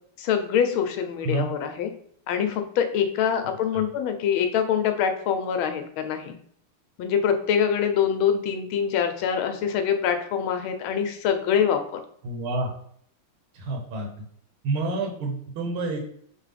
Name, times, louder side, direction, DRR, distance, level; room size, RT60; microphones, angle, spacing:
voice 1, 0.2-1.9 2.3-6.3 7.0-12.0, left 8 dB, 80° left, 7 dB, 1.4 m, -24 dB
voice 2, 12.2-12.7 13.5-14.1 14.6-16.0, right 2 dB, 75° right, 1 dB, 1.8 m, -28 dB
4.5 x 3.6 x 3.3 m, 0.62 s
omnidirectional pair, 2.3 m